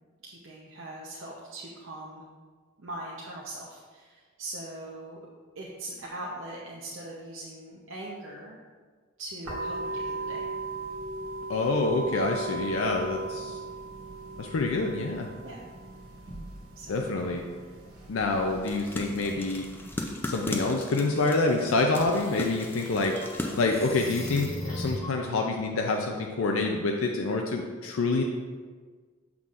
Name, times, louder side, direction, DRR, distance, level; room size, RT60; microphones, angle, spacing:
voice 1, 0.2-2.2 2.8-5.2 5.6-8.6 9.2-10.5 15.4-15.6 16.8-17.2, right 1 dB, 65° right, -4 dB, 0.7 m, -41 dB
sound 1, 9.4-20.1, right 3 dB, 85° right, 1.7 m, -38 dB
voice 2, 11.5-13.6 14.4-15.3 16.9-17.4 18.1-19.6 20.2-28.2, left 3 dB, 75° left, 2 dB, 0.5 m, -27 dB
sound 2, 18.6-24.5, left 1 dB, 10° left, 0.4 m, -38 dB
sound 3, 22.1-25.2, left 1 dB, 25° left, 1.0 m, -38 dB
7.1 x 6.0 x 2.5 m, 1.5 s
head